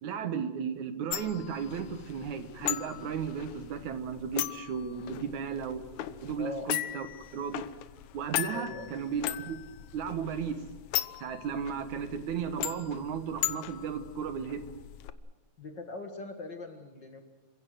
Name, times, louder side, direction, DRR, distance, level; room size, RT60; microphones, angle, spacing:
voice 1, 0.0-5.9 6.2-7.1 7.3-7.6 8.1-9.6 9.9-10.6 11.2-14.7, right 7 dB, 70° right, 9 dB, 2.6 m, -35 dB
sound 1, 1.1-15.1, left 13 dB, 70° left, 2.1 m, -38 dB
voice 2, 8.5-8.9 15.6-17.2, left 2 dB, 40° left, 5 dB, 1.9 m, -41 dB
28.5 x 16.5 x 7.8 m, 1.1 s
omnidirectional pair, 3.7 m